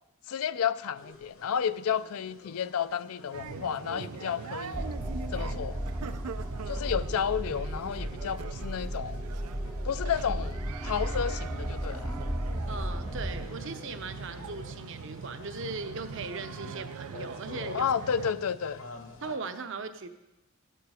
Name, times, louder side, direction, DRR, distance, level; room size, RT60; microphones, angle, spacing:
voice 1, 0.3-4.9 5.3-5.8 6.7-9.2 9.8-12.1 17.7-18.8, left 7 dB, 75° left, 15 dB, 0.4 m, -31 dB
sound 1, 0.9-19.4, left 2 dB, 60° left, 1.1 m, -50 dB
sound 2, 3.3-18.3, right 6 dB, 90° right, 0.5 m, -42 dB
sound 3, 4.7-13.5, equal, 5° right, 0.4 m, -34 dB
voice 2, 12.7-17.9 19.2-20.1, right 4 dB, 55° right, 8 dB, 0.7 m, -38 dB
12.5 x 7.7 x 4.9 m, 0.98 s
head